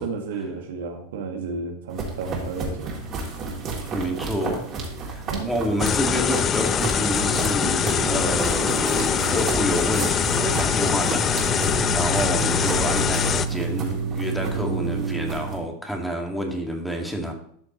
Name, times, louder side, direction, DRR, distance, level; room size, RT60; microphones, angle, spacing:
voice 1, 0.0-2.9 5.3-5.5, right 4 dB, 70° right, 3 dB, 1.6 m, -32 dB
sound 1, 1.9-15.6, right 4 dB, 40° right, 3.0 m, -30 dB
voice 2, 3.9-4.7 5.0-17.3, equal, 5° left, 2 dB, 2.0 m, -29 dB
sound 2, 5.8-13.5, left 8 dB, 30° left, 0.5 m, -23 dB
12.5 x 6.4 x 3.1 m, 0.65 s
hypercardioid pair, 90°, 0 cm